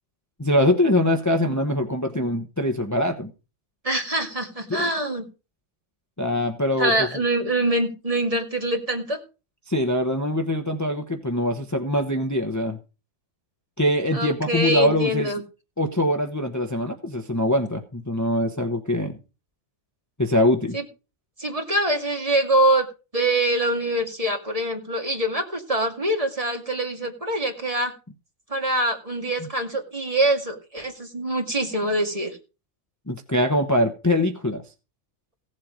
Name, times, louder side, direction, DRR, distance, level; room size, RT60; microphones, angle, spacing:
voice 1, 0.4-3.3 4.7-4.9 6.2-7.1 9.7-12.8 13.8-15.3 15.8-19.2 20.2-20.8 33.1-34.6, left 1 dB, 15° left, 4 dB, 1.1 m, -23 dB
voice 2, 3.8-5.2 6.8-9.2 14.1-15.4 20.7-20.8 21.4-22.9 23.1-27.9 28.5-32.4, right 1 dB, 30° right, 3 dB, 2.3 m, -24 dB
16.5 x 7.7 x 5.1 m, 0.32 s
omnidirectional pair, 1.2 m